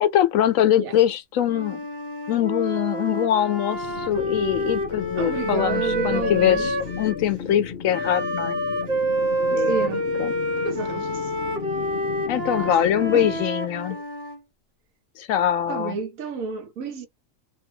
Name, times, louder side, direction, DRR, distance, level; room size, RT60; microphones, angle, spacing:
voice 1, 0.0-1.8 2.3-8.6 9.5-9.8 10.2-10.4 12.3-14.0 15.2-16.0, left 10 dB, 75° left, 1.0 m, -23 dB
Wind instrument woodwind instrument, 1.4-7.2 7.9-14.4, equal, 50° right, 1.2 m, -28 dB
sound 1, 3.8-13.5, left 7 dB, 55° left, 0.6 m, -36 dB
voice 2, 5.2-6.7 9.6-10.1 10.6-11.3 12.6-13.3 13.9-14.0 15.7-17.1, right 5 dB, 80° right, 1.3 m, -31 dB
2.7 x 2.7 x 2.8 m
omnidirectional pair, 1.4 m